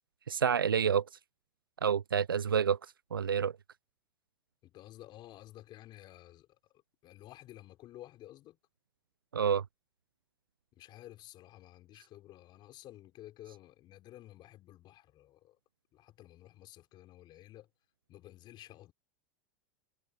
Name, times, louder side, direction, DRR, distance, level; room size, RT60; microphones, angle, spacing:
voice 1, 0.3-1.1 1.8-2.8 3.1-3.5 9.3-9.6, right 7 dB, 90° right, 0.5 m, -28 dB
voice 2, 4.6-8.6 10.7-15.6 15.9-17.7 18.1-18.9, left 14 dB, 45° left, 4.0 m, -53 dB
hypercardioid pair, 90°, 11 cm